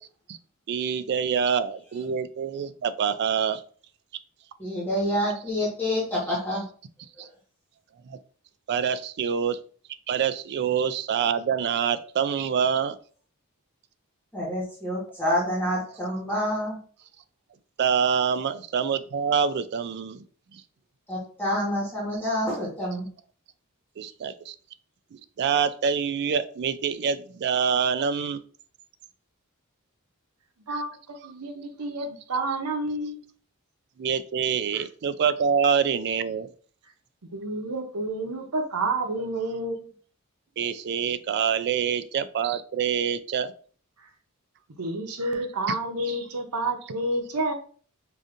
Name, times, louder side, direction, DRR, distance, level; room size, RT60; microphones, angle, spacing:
voice 1, 0.7-3.6 7.2-7.3 8.1-8.2 8.7-9.6 10.1-13.0 17.8-20.2 20.5-20.6 24.0-24.5 25.1-28.4 34.0-36.5 40.6-43.5 45.7-45.8, right 7 dB, 50° right, 13 dB, 0.3 m, -26 dB
voice 2, 4.6-6.6 7.2-7.3 14.3-16.8 21.1-23.1, equal, 10° left, -6 dB, 1.3 m, -27 dB
voice 3, 30.7-33.2 34.7-34.8 37.3-39.9 44.8-47.5, right 2 dB, 90° right, 5 dB, 0.8 m, -29 dB
4.9 x 2.6 x 2.5 m, 0.43 s
head